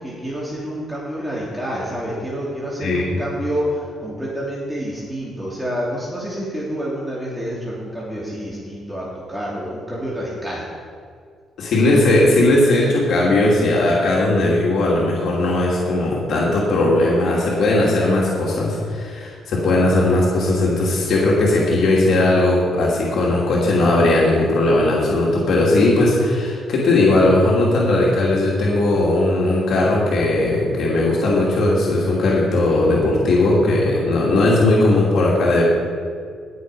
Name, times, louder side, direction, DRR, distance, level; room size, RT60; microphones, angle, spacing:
voice 1, 0.0-10.6, equal, 5° right, -7 dB, 3.0 m, -28 dB
voice 2, 2.8-3.2 11.6-35.6, left 2 dB, 65° left, -5 dB, 2.7 m, -18 dB
18.0 x 6.7 x 4.9 m, 2.2 s
cardioid pair, 90°, 0 cm